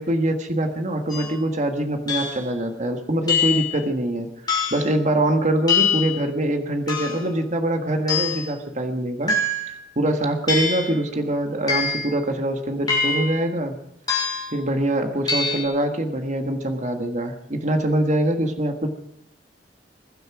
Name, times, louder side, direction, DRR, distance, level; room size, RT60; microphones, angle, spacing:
voice 1, 0.0-13.8 14.5-18.9, right 1 dB, 45° right, 5 dB, 1.6 m, -24 dB
sound 1, 1.1-1.3 2.1-2.5 3.3-3.7 4.5-4.9 5.7-6.2 6.9-7.3 8.1-8.5 9.3-9.8 10.5-10.9 11.7-12.1 12.9-13.4 14.1-14.5 15.3-15.6, left 4 dB, 25° left, 5.8 m, -24 dB
22.0 x 12.0 x 4.9 m, 0.79 s
head